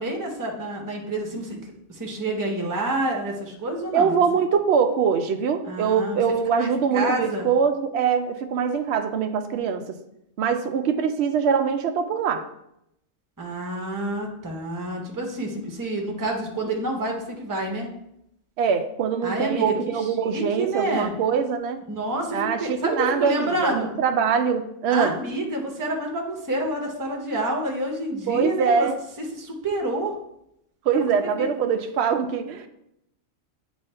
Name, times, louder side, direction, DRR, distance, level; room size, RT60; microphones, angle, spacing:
voice 1, 0.0-1.6 1.9-4.2 5.6-6.2 6.6-7.5 13.4-17.9 19.2-20.0 20.3-21.1 21.9-23.9 24.9-28.9 29.2-30.1 31.4-31.5, right 1 dB, 15° right, 1 dB, 0.8 m, -28 dB
voice 2, 3.9-9.8 10.4-12.5 18.6-21.8 22.3-25.2 28.3-29.0 30.9-32.7, right 6 dB, 60° right, 7 dB, 0.8 m, -23 dB
8.1 x 2.7 x 4.3 m, 0.79 s
omnidirectional pair, 1.4 m